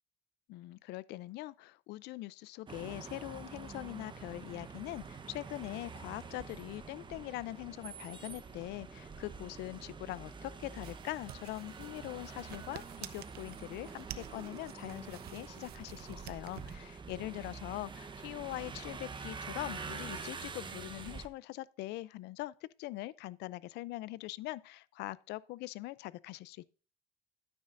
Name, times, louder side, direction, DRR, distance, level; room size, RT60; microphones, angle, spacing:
voice 1, 0.5-22.5 22.8-26.7, left 17 dB, 85° left, 0.5 m, -42 dB
sound 1, 2.7-21.3, right 5 dB, 30° right, 1.0 m, -46 dB
sound 2, 10.8-16.8, right 12 dB, 70° right, 0.7 m, -50 dB
10.0 x 9.7 x 2.6 m
cardioid pair, 110°, 17 cm